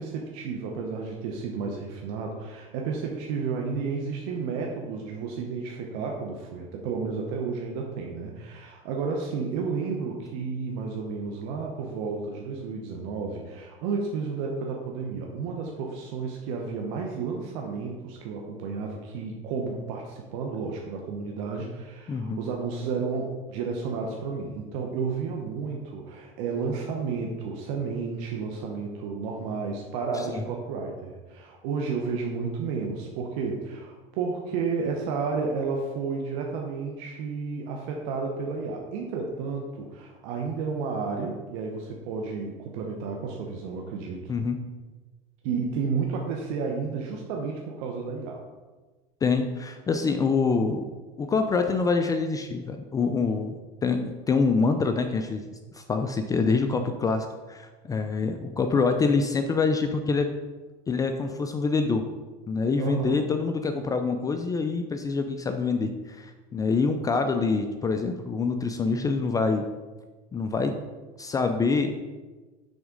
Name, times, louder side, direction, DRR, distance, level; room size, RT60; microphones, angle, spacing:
voice 1, 0.0-44.3 45.4-48.4 62.8-63.2, right 5 dB, 70° right, 0 dB, 0.9 m, -32 dB
voice 2, 22.1-22.4 30.2-30.4 44.3-44.6 49.2-50.8 51.2-53.5 53.8-55.4 55.7-60.3 60.9-62.1 62.5-69.6 70.3-70.7 71.2-71.9, left 4 dB, 20° left, 6 dB, 0.4 m, -25 dB
6.3 x 3.6 x 5.1 m, 1.3 s
supercardioid pair, 120°, 18 cm